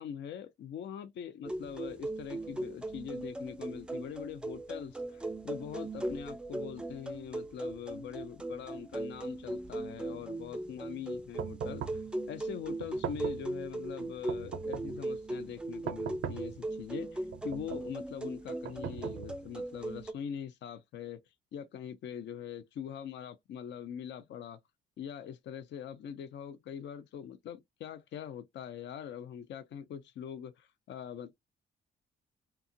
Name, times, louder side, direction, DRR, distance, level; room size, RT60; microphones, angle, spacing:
voice 1, 0.0-12.0 12.3-21.2 21.5-24.6 25.0-31.3, left 8 dB, 65° left, 0.5 m, -43 dB
sound 1, 1.4-20.1, right 2 dB, 5° right, 0.3 m, -39 dB
sound 2, 11.4-12.1 12.8-13.5 14.3-15.0 15.9-16.6 17.3-17.9 18.6-19.5, right 8 dB, 80° right, 0.5 m, -40 dB
2.8 x 2.3 x 2.6 m
cardioid pair, 90°, 20 cm